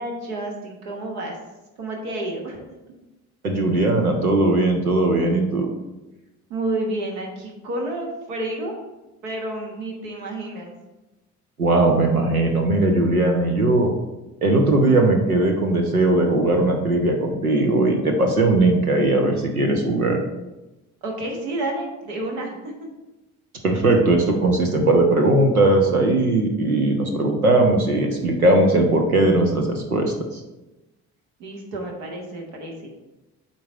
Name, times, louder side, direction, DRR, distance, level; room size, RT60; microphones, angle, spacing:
voice 1, 0.0-1.4 1.8-2.6 6.5-8.7 9.2-10.7 21.0-22.7 31.4-32.9, right 1 dB, 70° right, 1 dB, 1.4 m, -30 dB
voice 2, 3.4-5.7 11.6-13.9 14.4-20.2 23.6-30.1, right 2 dB, 90° right, 3 dB, 0.7 m, -19 dB
8.4 x 3.9 x 4.3 m, 1.0 s
figure-of-eight pair, 45°, 42 cm